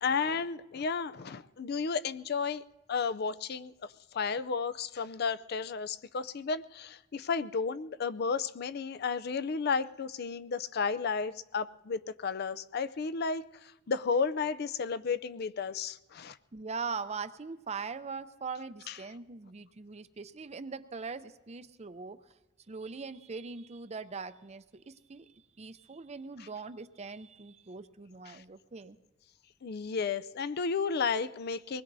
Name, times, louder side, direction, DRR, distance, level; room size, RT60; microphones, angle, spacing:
voice 1, 0.0-2.6 2.9-16.4 18.9-19.0 28.3-28.4 29.6-31.8, left 5 dB, 55° left, 15 dB, 0.4 m, -33 dB
voice 2, 16.5-22.2 22.7-29.0, right 5 dB, 35° right, 11 dB, 0.6 m, -41 dB
24.0 x 20.0 x 2.7 m, 1.1 s
head